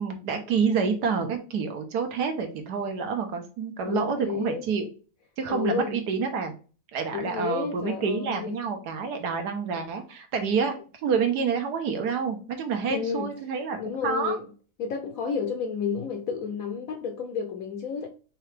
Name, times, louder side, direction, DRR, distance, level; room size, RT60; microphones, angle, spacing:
voice 1, 0.0-4.9 5.4-6.5 6.9-10.8 11.0-14.4, right 5 dB, 75° right, 1.4 m, -28 dB
voice 2, 3.8-4.6 5.5-6.0 7.1-8.6 12.9-13.3 13.8-14.5 14.8-18.1, left 6 dB, 70° left, 0.9 m, -31 dB
4.7 x 3.1 x 3.3 m
omnidirectional pair, 1.8 m